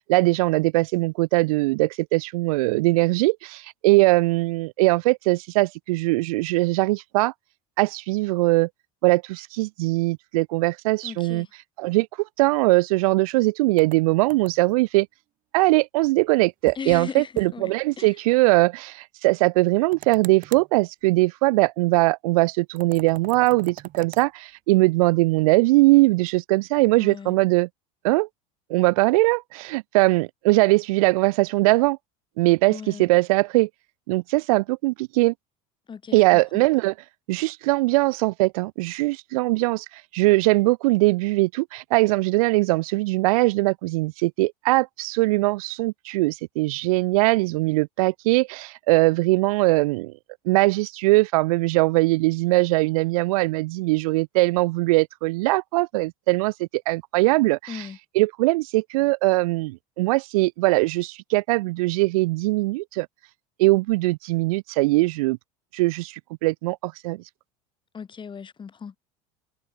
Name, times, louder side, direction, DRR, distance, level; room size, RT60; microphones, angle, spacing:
voice 1, 0.1-7.3 7.8-8.7 9.0-11.4 11.8-15.1 15.5-27.7 28.0-28.3 28.7-32.0 32.4-33.7 34.1-35.3 36.1-36.9 37.3-39.8 40.1-50.1 50.4-57.6 58.1-63.1 63.6-65.4 65.7-67.2, right 22 dB, 80° right, 1.2 m, -21 dB
voice 2, 11.0-11.5 16.7-18.2 26.9-27.4 32.7-33.1 35.9-36.7 57.7-58.0 67.9-69.0, left 6 dB, 25° left, 5.5 m, -38 dB
sound 1, 13.8-14.8 16.7-17.0 17.4-17.5 17.8-17.9 19.9-20.7 22.8-24.3, right 14 dB, 50° right, 3.3 m, -41 dB
supercardioid pair, 100°, 18 cm